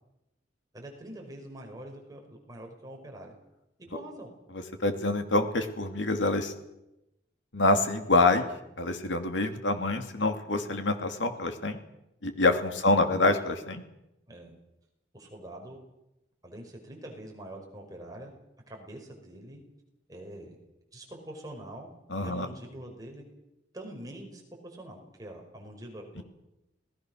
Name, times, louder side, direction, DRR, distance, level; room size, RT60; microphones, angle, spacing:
voice 1, 0.7-3.3 3.9-4.3 12.8-13.2 14.3-14.5 15.1-15.8 16.4-18.3 18.7-19.6 20.1-20.6 20.9-21.9 22.2-23.3 23.7-26.2, right 1 dB, 20° right, 0 dB, 5.6 m, -44 dB
voice 2, 4.5-6.5 7.5-8.5 8.8-11.8 12.2-13.8 22.1-22.5 26.2-26.3, left 2 dB, 85° left, 6 dB, 2.7 m, -26 dB
27.5 x 19.0 x 6.4 m, 0.91 s
head